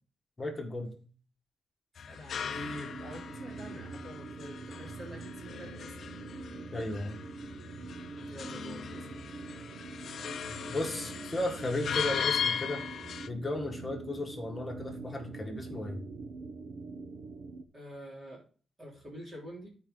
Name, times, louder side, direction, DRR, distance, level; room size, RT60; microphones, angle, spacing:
voice 1, 0.4-1.0 6.7-7.2 10.7-12.9 13.3-16.0, left 1 dB, 20° left, 2 dB, 1.7 m, -35 dB
sound 1, 2.0-13.3, left 7 dB, 55° left, 0.6 m, -38 dB
voice 2, 2.0-6.0 8.3-9.1 17.7-18.4 18.8-19.7, equal, 25° right, -3 dB, 3.0 m, -46 dB
sound 2, 2.5-17.6, right 4 dB, 65° right, 0.9 m, -44 dB
13.5 x 4.9 x 3.9 m, 0.39 s
wide cardioid pair, 165°, 0 cm